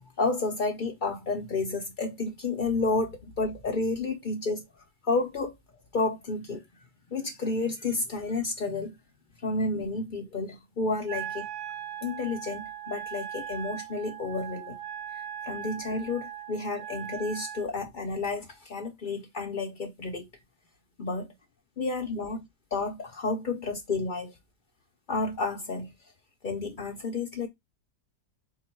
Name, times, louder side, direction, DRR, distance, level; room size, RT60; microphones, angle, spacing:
voice 1, 0.2-4.7 5.0-5.5 5.9-6.6 7.1-9.0 9.4-11.5 12.0-14.8 15.4-20.3 21.0-21.3 21.8-22.5 22.7-24.4 25.1-25.9 26.4-27.5, left 3 dB, 65° left, 0.4 m, -31 dB
Wind instrument woodwind instrument, 11.1-17.7, right 10 dB, 80° right, 1.4 m, -39 dB
4.6 x 2.1 x 4.3 m
omnidirectional pair, 1.7 m